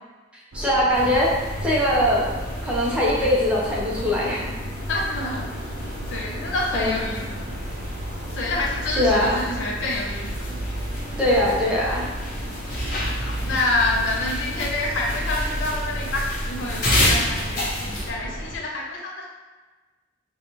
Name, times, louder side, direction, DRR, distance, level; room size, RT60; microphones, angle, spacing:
voice 1, 0.5-2.3 2.6-4.5 6.7-6.9 9.0-9.4 11.2-12.1, left 1 dB, 5° right, -6 dB, 0.7 m, -21 dB
sound 1, 0.5-18.6, equal, 80° right, 0.6 m, -33 dB
sound 2, 0.9-18.1, left 1 dB, 50° left, 0.7 m, -31 dB
voice 2, 4.9-5.5 6.1-7.5 8.3-10.6 12.8-19.3, left 2 dB, 90° left, -3 dB, 0.6 m, -28 dB
3.9 x 2.3 x 3.0 m, 1.3 s
head